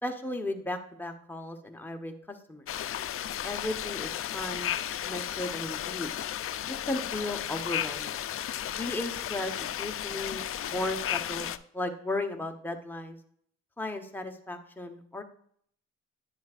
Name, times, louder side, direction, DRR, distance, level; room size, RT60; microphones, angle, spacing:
voice 1, 0.0-2.6 3.4-4.7 5.0-6.1 6.9-8.2 8.7-10.4 10.7-13.2 13.8-15.2, left 2 dB, 5° left, 4 dB, 1.0 m, -35 dB
sound 1, 2.7-11.6, left 11 dB, 50° left, 0.5 m, -34 dB
10.0 x 7.2 x 2.5 m, 0.64 s
cardioid pair, 90°, 30 cm